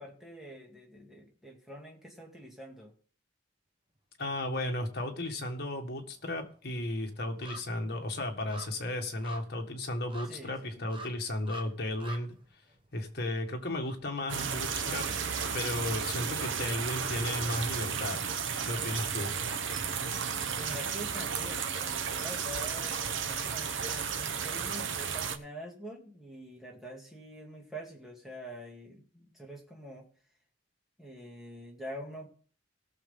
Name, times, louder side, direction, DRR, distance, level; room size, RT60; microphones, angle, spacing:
voice 1, 0.0-2.9 10.3-10.8 20.6-30.1 31.0-32.3, equal, ahead, -2 dB, 2.6 m, -45 dB
voice 2, 4.2-12.4 12.9-15.1 15.5-18.2 18.6-19.3, left 1 dB, 55° left, 3 dB, 1.9 m, -34 dB
sound 1, 5.1-5.2 5.5-15.5 15.8-15.9, right 2 dB, 25° right, 1.1 m, -51 dB
sound 2, 14.3-25.4, right 6 dB, 75° right, 1.0 m, -33 dB
18.0 x 6.7 x 3.9 m, 0.44 s
head